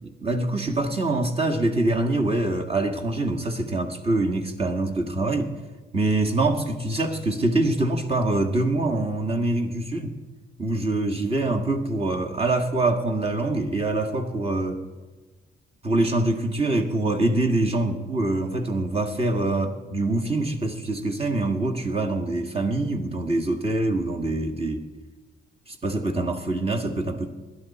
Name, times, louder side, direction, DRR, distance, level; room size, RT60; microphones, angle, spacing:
voice 1, 0.0-5.5 5.9-10.1 10.6-14.8 15.8-24.8 25.7-27.3, right 2 dB, 30° right, 2 dB, 1.9 m, -24 dB
21.5 x 11.5 x 4.3 m, 1.3 s
cardioid pair, 90°, 20 cm